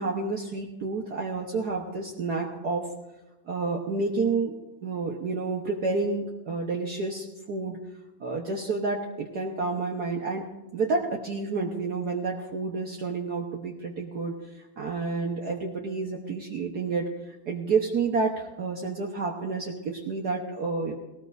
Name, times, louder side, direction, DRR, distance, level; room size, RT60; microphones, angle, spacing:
voice 1, 0.0-2.9 3.5-7.8 8.2-10.5 10.7-17.1 17.5-20.9, right 4 dB, 55° right, 0 dB, 1.5 m, -30 dB
18.5 x 18.5 x 2.6 m, 1.0 s
omnidirectional pair, 2.3 m